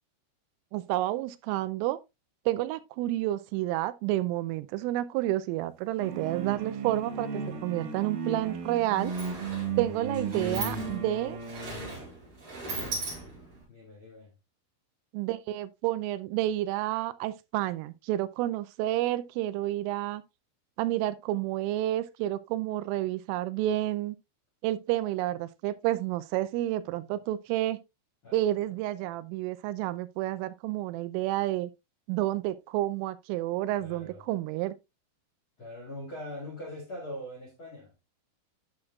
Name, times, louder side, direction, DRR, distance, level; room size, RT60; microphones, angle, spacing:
voice 1, 0.7-2.0 2.5-9.1 9.8-11.4 15.1-20.2 20.8-24.2 24.6-27.8 28.3-31.7 32.1-34.7, right 14 dB, 85° right, 3.1 m, -30 dB
sound 1, 6.0-11.9, right 5 dB, 60° right, 2.5 m, -35 dB
Sliding door, 8.3-8.4 8.7-13.6, right 2 dB, 30° right, 4.7 m, -39 dB
voice 2, 13.7-14.3 27.0-27.2 28.2-28.4 33.8-34.3 35.6-37.9, left 1 dB, 70° left, 1.2 m, -42 dB
11.0 x 6.2 x 2.3 m
omnidirectional pair, 5.8 m